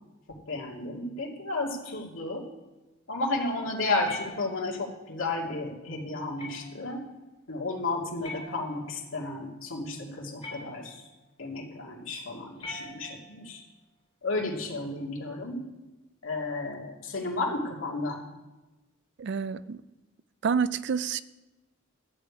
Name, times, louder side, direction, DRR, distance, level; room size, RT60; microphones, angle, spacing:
voice 1, 0.3-2.5 3.1-7.0 7.5-11.0 11.4-13.6 14.2-15.6 16.2-18.2, left 2 dB, 75° left, -1 dB, 2.4 m, -32 dB
sound 1, 4.0-4.9 6.4-6.9 8.2-9.1 10.4-11.1 12.6-13.5, left 2 dB, 25° left, 3.9 m, -43 dB
voice 2, 19.2-19.8 20.4-21.2, right 6 dB, 55° right, 15 dB, 0.4 m, -28 dB
12.5 x 5.1 x 8.4 m, 1.1 s
head